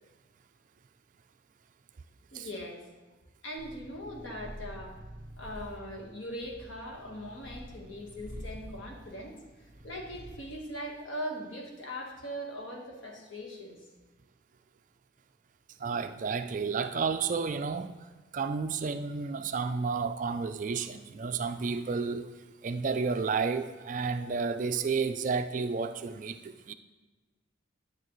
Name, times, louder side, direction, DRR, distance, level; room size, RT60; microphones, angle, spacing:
voice 1, 2.3-2.9 3.4-5.0 5.4-9.3 9.8-13.8, equal, 70° left, 0 dB, 1.4 m, -40 dB
Purr, 3.6-10.5, equal, 15° right, 1.2 m, -47 dB
voice 2, 15.8-17.9 18.3-22.3 22.6-26.7, right 5 dB, 40° right, 9 dB, 0.3 m, -31 dB
9.8 x 8.7 x 3.1 m, 1.2 s
head